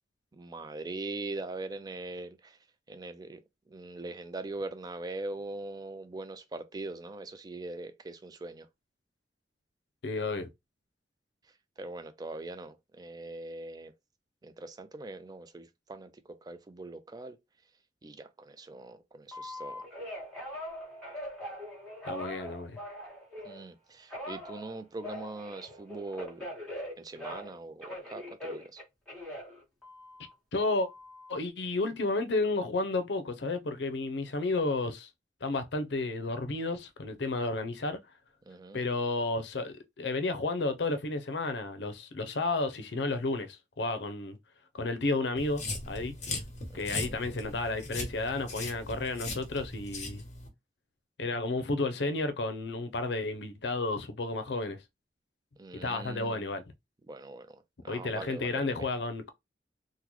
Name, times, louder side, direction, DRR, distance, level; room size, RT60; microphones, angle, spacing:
voice 1, 0.3-2.6 2.9-3.4 3.7-8.7 11.8-13.9 14.4-17.4 18.0-19.8 23.4-26.5 27.0-28.8 38.5-38.8 46.7-47.2 55.6-56.4 57.1-58.7, right 2 dB, 20° right, 0.4 m, -41 dB
voice 2, 10.0-10.5 22.0-22.8 30.5-30.9 31.3-35.1 35.4-38.0 38.7-44.4 44.7-46.1 46.7-50.2 51.2-54.8 55.8-56.6 57.9-59.2, left 2 dB, 70° left, 0.6 m, -32 dB
Telephone, 19.3-23.6 24.1-27.6 27.8-30.3 30.8-31.3, left 1 dB, 5° left, 1.4 m, -42 dB
sound 1, 45.4-50.5, left 2 dB, 40° left, 1.1 m, -39 dB
3.7 x 2.1 x 3.0 m
head